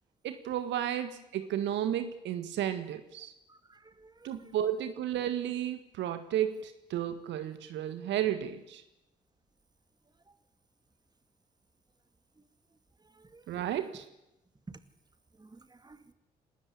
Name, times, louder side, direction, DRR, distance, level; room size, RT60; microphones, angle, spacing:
voice 1, 0.2-3.3 4.2-8.8 13.5-14.1, right 10 dB, 60° right, 9 dB, 1.7 m, -33 dB
voice 2, 3.5-4.5 13.0-13.6 14.7-14.8 15.4-16.1, right 3 dB, 20° right, 10 dB, 2.2 m, -53 dB
28.0 x 12.5 x 9.8 m, 0.88 s
figure-of-eight pair, 40°, 21 cm